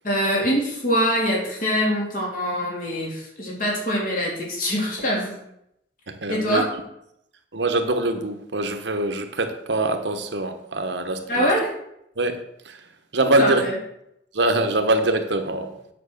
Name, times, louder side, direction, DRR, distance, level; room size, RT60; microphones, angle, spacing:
voice 1, 0.0-5.4 6.3-6.6 11.3-11.7 13.2-13.7, equal, 45° left, -3 dB, 3.6 m, -24 dB
voice 2, 6.1-6.6 7.5-11.5 12.2-12.8 13.1-13.6 14.3-15.8, right 2 dB, 70° right, 7 dB, 1.1 m, -24 dB
9.1 x 6.3 x 6.5 m, 0.78 s
head